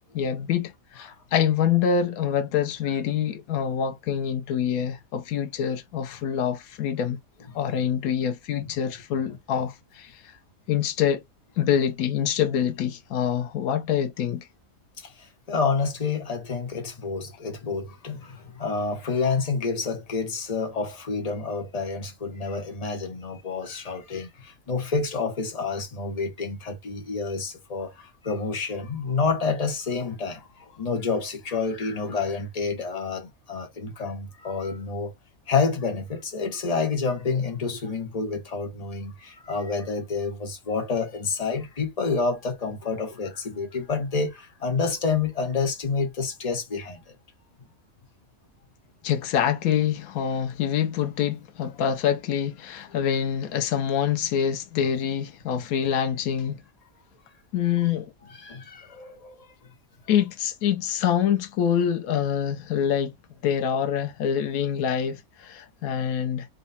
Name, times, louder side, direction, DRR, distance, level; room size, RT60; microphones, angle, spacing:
voice 1, 0.1-7.2 7.5-10.2 10.7-11.2 11.6-14.5 49.0-56.6 57.5-58.1 60.1-63.1 63.4-66.5, left 8 dB, 85° left, 1.1 m, -25 dB
voice 2, 15.5-35.1 35.5-47.0 58.4-59.3, left 4 dB, 30° left, 1.1 m, -28 dB
4.0 x 2.3 x 4.1 m
omnidirectional pair, 1.5 m